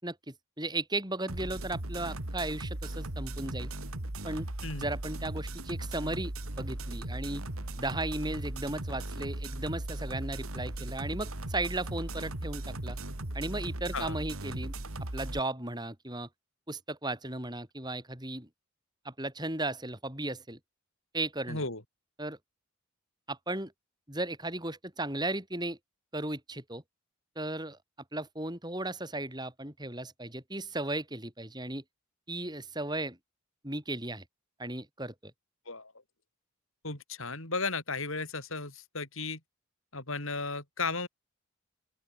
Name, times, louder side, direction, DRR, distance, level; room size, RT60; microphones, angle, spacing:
voice 1, 0.0-3.7 4.2-4.5 4.8-7.4 7.8-13.0 13.3-14.7 15.1-16.3 16.7-18.5 19.0-20.6 21.1-21.6 22.2-22.4 23.3-23.7 24.1-25.8 26.1-26.8 27.4-27.8 28.1-31.8 32.3-33.2 33.6-34.2 34.6-35.1, right 2 dB, 20° right, 6.0 m, -35 dB
sound 1, 1.3-15.4, right 1 dB, 75° right, 2.6 m, -37 dB
voice 2, 21.5-21.8 35.7-35.9 36.8-39.4 39.9-41.1, left 3 dB, 70° left, 7.1 m, -35 dB
open air
head